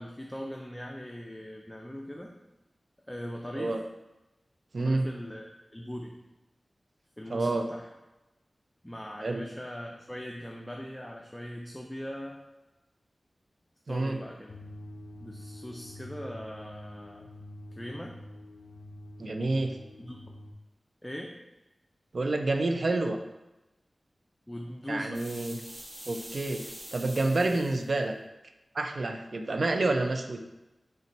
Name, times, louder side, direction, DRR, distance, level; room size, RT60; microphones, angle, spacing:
voice 1, 0.0-2.3 3.1-3.8 4.8-6.2 7.2-7.9 8.8-12.4 13.9-14.5 15.2-17.3 17.8-18.2 20.0-20.2 21.0-21.4 24.5-25.2, equal, 10° left, 0 dB, 0.3 m, -40 dB
voice 2, 4.7-5.1 7.3-7.6 9.2-9.4 13.9-14.2 19.2-19.8 22.1-23.2 24.9-25.6 26.1-26.6 26.9-28.1 28.7-30.4, right 2 dB, 65° right, 5 dB, 0.3 m, -28 dB
sound 1, 14.5-20.5, left 1 dB, 90° left, 0.3 m, -46 dB
sound 2, 25.1-27.9, equal, 40° right, 1.1 m, -45 dB
3.9 x 2.2 x 4.1 m, 1.0 s
wide cardioid pair, 65°, 0 cm